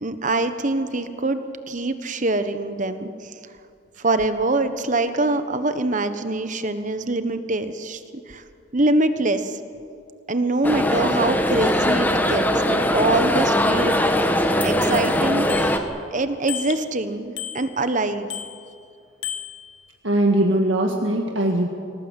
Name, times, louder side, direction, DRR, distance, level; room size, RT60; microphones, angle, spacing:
voice 1, 0.0-1.4 1.7-3.3 4.0-8.4 8.7-9.6 10.3-14.2 14.6-15.5 16.1-18.3, right 2 dB, 40° right, 10 dB, 1.3 m, -24 dB
sound 1, 10.6-15.8, left 1 dB, 10° left, 1.4 m, -20 dB
Bicycle bell, 15.5-16.1 16.5-17.0 17.4-18.0 18.3-18.8 19.2-20.0, left 10 dB, 85° left, 1.3 m, -34 dB
voice 2, 20.0-21.7, right 1 dB, 90° right, 2 dB, 1.8 m, -20 dB
25.0 x 17.5 x 8.3 m, 2.4 s
head